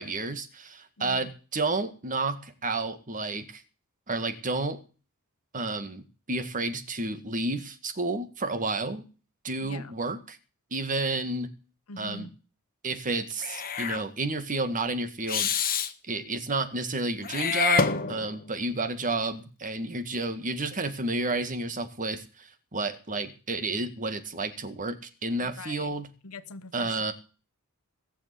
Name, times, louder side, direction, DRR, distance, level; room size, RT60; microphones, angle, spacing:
voice 1, 0.0-3.6 4.1-4.8 5.5-9.0 9.4-10.4 10.7-11.5 12.0-12.3 12.8-15.5 16.1-26.1 26.7-27.1, right 3 dB, 35° right, 1.9 m, -31 dB
voice 2, 1.0-1.3 9.6-9.9 11.9-12.3 25.4-26.0 26.2-27.0, left 3 dB, 70° left, 1.1 m, -43 dB
Meow / Hiss, 13.4-14.0 15.3-15.9 17.2-18.5, left 6 dB, 40° left, 1.4 m, -27 dB
18.5 x 7.1 x 8.4 m
head